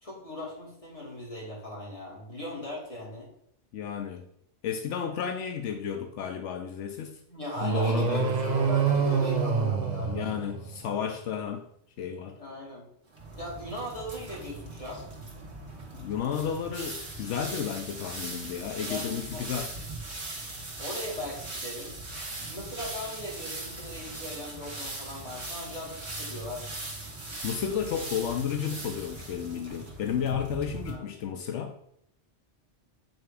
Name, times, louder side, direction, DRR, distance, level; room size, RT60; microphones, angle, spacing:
voice 1, 0.0-3.3 7.3-10.3 12.4-12.9 13.4-15.0 18.9-19.5 20.8-22.0 22.5-26.8 30.9-31.0, left 1 dB, 30° left, -4 dB, 2.5 m, -39 dB
voice 2, 3.7-4.3 4.6-7.2 7.6-8.3 10.0-11.7 12.0-12.4 15.9-19.7 27.4-31.8, left 8 dB, 80° left, 5 dB, 0.9 m, -32 dB
sound 1, 7.6-10.9, right 5 dB, 45° right, 0.8 m, -26 dB
sound 2, 13.1-30.9, right 2 dB, 65° right, 2.0 m, -40 dB
8.9 x 3.4 x 4.8 m, 0.71 s
omnidirectional pair, 1.2 m